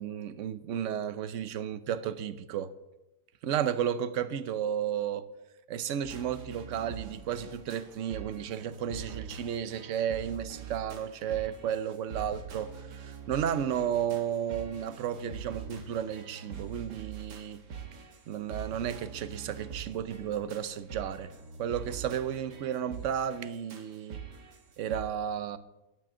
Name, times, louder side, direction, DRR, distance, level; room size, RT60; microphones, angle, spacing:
voice 1, 0.0-2.7 3.4-5.3 5.7-17.6 18.3-21.3 21.6-24.2 24.8-25.6, right 9 dB, 55° right, 0.9 m, -33 dB
sound 1, 6.0-25.0, right 6 dB, 80° right, 2.2 m, -44 dB
13.0 x 6.3 x 8.9 m
omnidirectional pair, 1.8 m